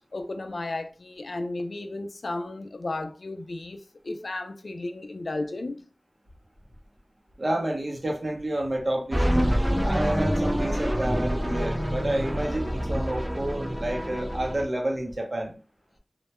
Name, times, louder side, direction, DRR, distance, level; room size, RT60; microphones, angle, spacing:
voice 1, 0.1-5.9, left 2 dB, 65° left, 0.3 m, -34 dB
voice 2, 7.4-15.5, right 1 dB, 45° right, 0.7 m, -30 dB
sound 1, 9.1-14.6, equal, 10° right, 0.4 m, -26 dB
2.1 x 2.1 x 2.9 m
wide cardioid pair, 65°, 0 cm